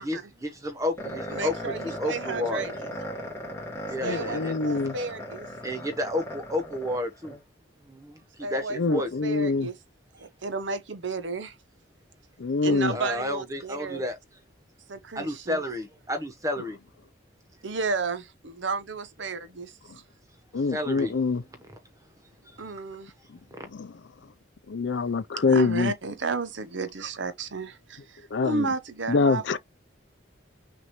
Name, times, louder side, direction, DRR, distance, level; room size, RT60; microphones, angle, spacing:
voice 1, 0.0-2.7 3.9-4.8 5.6-7.4 7.9-9.1 12.6-14.2 15.1-16.8 20.7-21.2 22.4-22.6 23.5-23.7, left 1 dB, 15° right, 1.1 m, -31 dB
sound 1, 1.0-7.4, equal, 15° left, 1.8 m, -37 dB
voice 2, 1.3-2.9 4.0-5.5 8.4-9.7 10.1-11.6 12.6-14.0 14.9-15.6 17.6-20.0 22.6-23.1 25.4-29.6, right 4 dB, 75° right, 0.8 m, -33 dB
voice 3, 4.0-5.0 8.7-9.7 12.4-12.9 19.9-20.0 20.5-21.4 23.7-23.9 24.7-25.9 28.3-28.7 29.1-29.6, left 4 dB, 70° left, 0.5 m, -25 dB
6.1 x 2.6 x 3.1 m
head